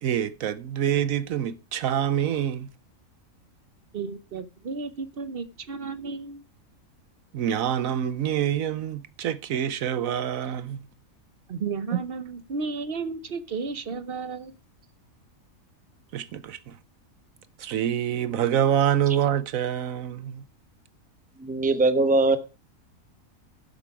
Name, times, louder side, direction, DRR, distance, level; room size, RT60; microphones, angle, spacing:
voice 1, 0.0-2.7 7.3-10.8 16.1-16.8 17.6-20.4, right 10 dB, 80° right, 1.1 m, -26 dB
voice 2, 3.9-6.4 11.5-14.6, right 4 dB, 45° right, 1.0 m, -33 dB
voice 3, 21.4-22.4, right 2 dB, 5° right, 0.8 m, -21 dB
11.5 x 7.2 x 4.8 m
omnidirectional pair, 1.4 m